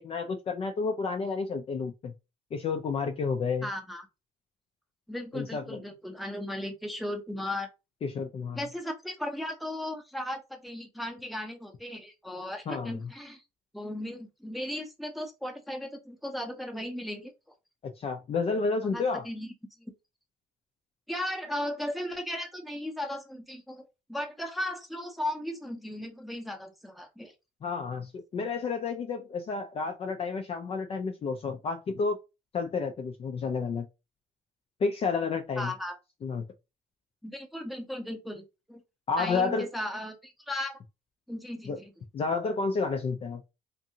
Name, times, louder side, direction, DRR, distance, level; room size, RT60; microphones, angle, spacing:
voice 1, 0.0-2.1 2.5-3.7 5.3-5.8 8.0-8.6 12.7-13.0 17.8-19.3 27.6-32.2 32.5-33.9 34.8-35.7 36.2-36.4 39.1-39.7 41.7-41.8 42.1-43.4, left 4 dB, 35° left, 0.4 m, -30 dB
voice 2, 3.6-4.1 5.1-7.7 8.5-13.4 13.7-17.3 18.8-19.5 19.8-19.9 21.1-27.3 35.6-36.0 37.2-38.8 39.2-40.8 41.3-41.9, left 1 dB, ahead, 0.7 m, -36 dB
2.6 x 2.6 x 2.7 m
cardioid pair, 110°, 17 cm